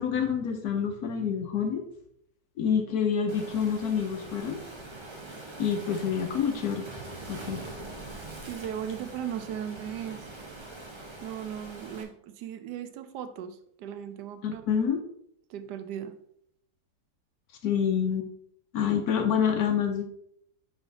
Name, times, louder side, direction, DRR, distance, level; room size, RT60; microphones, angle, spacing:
voice 1, 0.0-1.8 2.6-4.6 5.6-6.8 7.3-7.6 14.4-15.0 17.6-18.3 18.7-20.0, left 7 dB, 70° left, 5 dB, 1.1 m, -27 dB
Waves surf, 3.3-12.0, right 2 dB, 35° right, 0.4 m, -43 dB
voice 2, 8.4-10.3 11.2-14.6 15.5-16.1, right 9 dB, 75° right, 10 dB, 1.2 m, -37 dB
5.3 x 4.9 x 3.9 m, 0.70 s
omnidirectional pair, 1.8 m